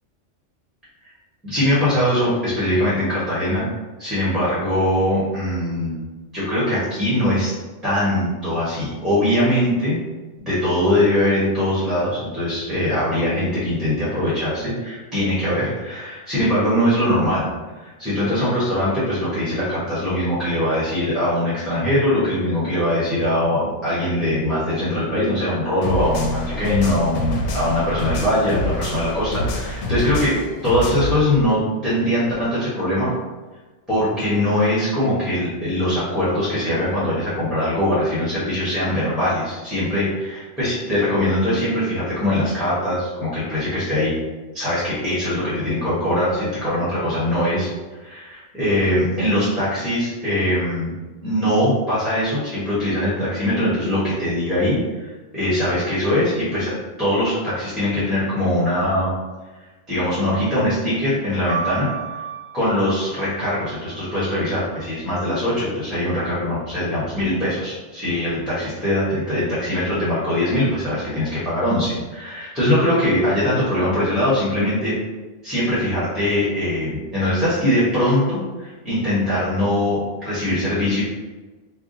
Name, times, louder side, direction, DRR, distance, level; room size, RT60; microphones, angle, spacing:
voice 1, 1.4-3.7 4.0-6.0 6.3-7.5 7.8-10.0 10.4-17.5 17.7-33.1 33.9-44.2 44.5-47.7 48.0-50.9 51.2-59.1 59.9-62.2 62.5-74.9 75.4-81.0, left 1 dB, ahead, -11 dB, 1.3 m, -21 dB
sound 1, 25.8-31.2, left 1 dB, 75° left, 0.9 m, -26 dB
sound 2, 61.5-65.3 66.1-66.9, right 7 dB, 35° right, 0.7 m, -34 dB
3.5 x 2.4 x 4.0 m, 1.2 s
omnidirectional pair, 1.3 m